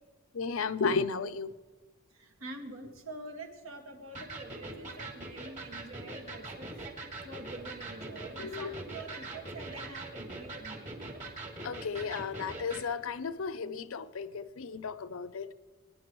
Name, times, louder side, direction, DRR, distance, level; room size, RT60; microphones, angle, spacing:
voice 1, 0.3-1.5 8.4-8.8 11.6-15.5, left 5 dB, 70° left, 13 dB, 0.5 m, -34 dB
voice 2, 2.2-6.7 7.2-11.0, right 2 dB, 75° right, 3 dB, 1.8 m, -46 dB
Electric guitar, 4.1-12.9, right 2 dB, 35° right, 2.2 m, -42 dB
23.0 x 10.0 x 3.1 m, 1.3 s
head